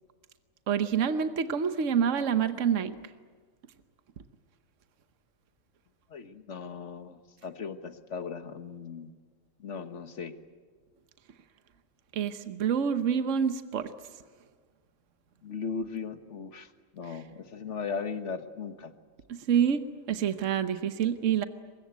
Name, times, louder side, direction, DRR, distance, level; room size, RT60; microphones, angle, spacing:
voice 1, 0.7-2.9 12.1-13.9 19.3-21.4, right 8 dB, 65° right, 10 dB, 1.3 m, -27 dB
voice 2, 6.1-9.1 9.6-10.3 15.4-16.7 16.9-18.9, left 5 dB, 60° left, 9 dB, 1.7 m, -37 dB
23.5 x 21.5 x 9.4 m, 1.5 s
omnidirectional pair, 1.4 m